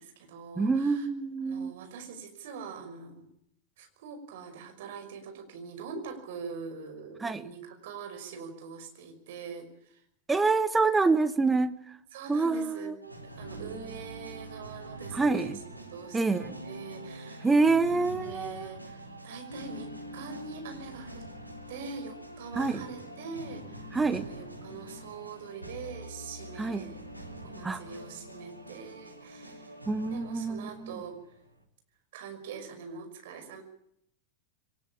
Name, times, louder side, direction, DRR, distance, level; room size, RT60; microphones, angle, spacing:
voice 1, 0.0-1.1 1.5-3.3 3.8-10.0 12.1-15.6 15.9-17.5 17.8-21.3 21.7-27.0 27.4-29.7 30.1-31.2 32.1-33.6, right 5 dB, 55° right, 6 dB, 5.7 m, -43 dB
voice 2, 0.6-1.7 7.2-7.4 10.3-11.8 12.3-12.9 15.1-15.6 16.1-16.6 17.4-18.7 22.5-22.8 23.9-24.3 26.6-26.9 27.6-27.8 29.9-31.0, right 3 dB, 10° right, 11 dB, 1.4 m, -26 dB
sound 1, 13.0-31.6, right 1 dB, 90° right, 3.3 m, -45 dB
23.0 x 20.0 x 8.7 m, 0.71 s
figure-of-eight pair, 90°, 0 cm